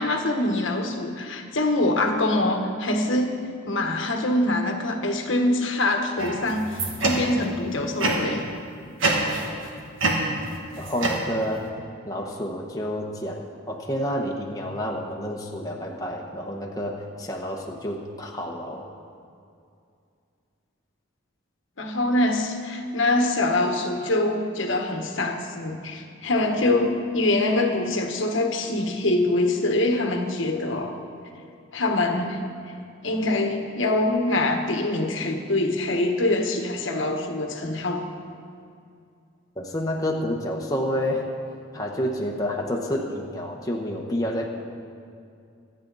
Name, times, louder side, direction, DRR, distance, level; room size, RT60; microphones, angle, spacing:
voice 1, 0.0-3.4 3.7-8.5 21.8-31.0 31.7-32.5 33.0-38.1, left 2 dB, 65° left, 4 dB, 1.3 m, -24 dB
sound 1, 6.2-7.5 8.0-8.5 9.0-9.7 10.0-11.7, right 2 dB, 70° right, 1.8 m, -26 dB
voice 2, 10.8-11.7 12.0-18.8 39.6-41.3 41.7-44.5, equal, 15° left, -1 dB, 1.1 m, -29 dB
25.5 x 8.9 x 4.0 m, 2.4 s
head